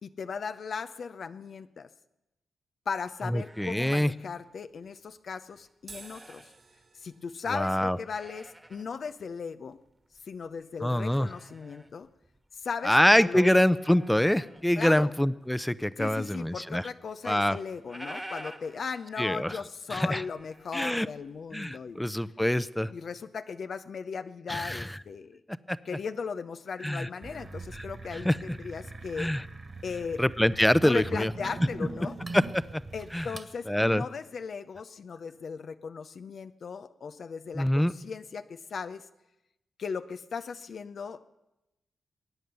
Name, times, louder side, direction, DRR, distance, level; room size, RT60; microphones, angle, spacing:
voice 1, 0.0-1.9 2.9-6.5 6.9-9.8 10.2-12.1 12.5-13.5 14.8-15.1 16.0-22.0 22.9-25.4 25.8-29.3 29.8-30.2 30.8-32.2 32.9-39.1 39.8-41.3, left 5 dB, 65° left, 9 dB, 0.6 m, -37 dB
sound 1, 3.2-5.1 5.5-6.6 7.1-7.2 7.8-8.9 9.2-9.3 9.7-12.7 13.0-14.9 15.3-16.5 16.8-16.9 17.1-17.2 17.5-21.3 21.7-22.1, right 1 dB, 10° right, 1.5 m, -49 dB
voice 2, 3.3-4.1 7.5-8.0 10.8-11.3 12.8-16.8 17.3-17.6 19.2-19.6 19.9-20.2 20.7-21.1 21.5-22.9 24.5-25.0 25.7-25.8 26.8-27.1 27.7-27.8 28.2-28.4 29.2-29.4 30.2-31.3 32.3-32.8 33.1-33.3 33.7-34.0 37.5-37.9, left 1 dB, 5° left, 16 dB, 0.7 m, -25 dB
sound 2, 5.8-12.4, right 4 dB, 55° right, 2.1 m, -56 dB
sound 3, 27.2-33.5, right 3 dB, 40° right, 2.0 m, -42 dB
22.0 x 9.3 x 6.9 m, 0.92 s
supercardioid pair, 45°, 0 cm